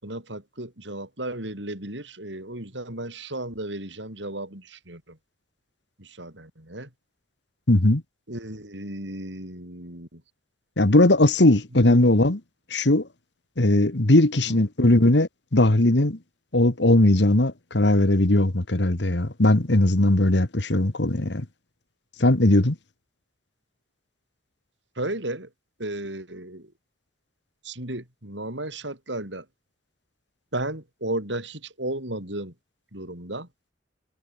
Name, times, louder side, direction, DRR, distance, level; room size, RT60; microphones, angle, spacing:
voice 1, 0.0-5.2 6.0-6.9 8.3-10.2 11.7-12.0 14.5-14.6 25.0-25.5 25.8-26.7 27.6-29.5 30.5-32.5 32.9-33.5, right 1 dB, 80° right, 7.9 m, -34 dB
voice 2, 7.7-8.0 10.8-12.4 12.7-13.1 13.6-16.2 16.5-21.5 22.2-22.8, left 1 dB, 70° left, 1.8 m, -19 dB
head